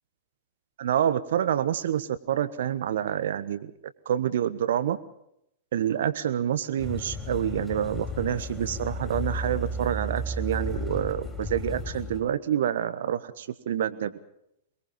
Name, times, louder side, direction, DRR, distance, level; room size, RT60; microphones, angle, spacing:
voice 1, 0.8-3.7 4.0-5.0 5.7-14.1, right 10 dB, 65° right, 13 dB, 1.3 m, -27 dB
sound 1, 6.8-12.2, left 1 dB, 15° left, 6.4 m, -33 dB
24.0 x 21.5 x 5.5 m, 0.78 s
figure-of-eight pair, 100°, 0 cm